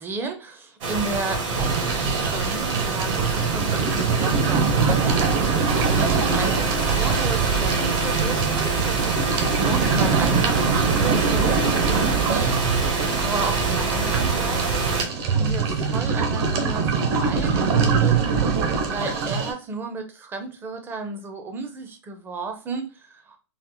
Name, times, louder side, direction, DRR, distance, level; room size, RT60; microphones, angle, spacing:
voice 1, 0.0-6.6 6.9-9.3 9.6-12.6 13.2-14.8 15.3-18.4 18.9-23.4, right 3 dB, 15° right, 5 dB, 0.5 m, -33 dB
sound 1, 0.8-15.0, right 4 dB, 70° right, 1.4 m, -25 dB
sound 2, 1.5-19.5, right 5 dB, 55° right, 0.9 m, -24 dB
4.0 x 2.0 x 2.7 m, 0.34 s
hypercardioid pair, 145°, 16 cm